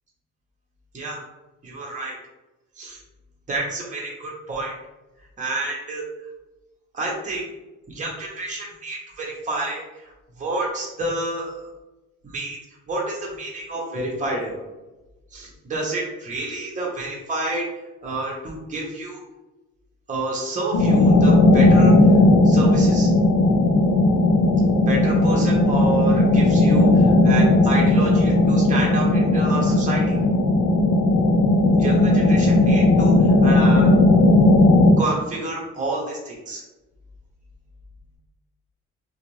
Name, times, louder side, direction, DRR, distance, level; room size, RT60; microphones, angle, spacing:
voice 1, 1.6-2.2 2.8-3.0 3.5-4.8 5.4-6.0 6.9-7.4 7.9-10.1 10.4-11.6 12.2-12.6 12.9-14.7 15.3-17.7 18.0-19.2 20.1-21.9 22.4-23.1 24.9-30.1 31.7-33.1 33.4-33.9 35.0-36.6, right 2 dB, 25° right, -4 dB, 0.8 m, -29 dB
sound 1, 20.7-34.9, left 2 dB, 75° left, 0.6 m, -16 dB
2.5 x 2.2 x 3.0 m, 1.1 s
cardioid pair, 90°, 30 cm